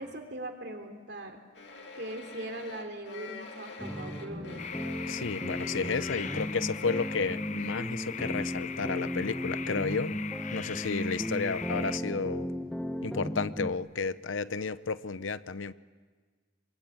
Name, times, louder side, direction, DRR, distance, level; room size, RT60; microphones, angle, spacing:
voice 1, 0.0-1.4 1.9-4.6, right 1 dB, 60° right, 5 dB, 3.3 m, -40 dB
sound 1, 1.5-7.3, left 3 dB, 65° left, 3.0 m, -46 dB
sound 2, 3.8-13.7, equal, 5° left, 1.2 m, -36 dB
sound 3, 4.6-12.0, left 8 dB, 40° left, 0.7 m, -41 dB
voice 2, 5.1-10.2 10.5-12.5 13.0-15.7, left 4 dB, 80° left, 15 dB, 0.8 m, -32 dB
24.5 x 23.5 x 9.1 m, 1.5 s
head